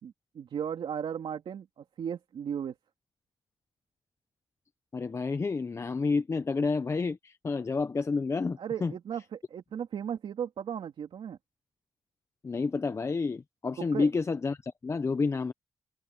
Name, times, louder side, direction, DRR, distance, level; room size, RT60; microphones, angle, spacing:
voice 1, 0.0-2.8 8.6-11.4 13.9-14.1, right 8 dB, 75° right, 3.2 m, -36 dB
voice 2, 4.9-8.9 12.4-15.5, left 4 dB, 30° left, 0.7 m, -29 dB
cardioid pair, 95°, 9 cm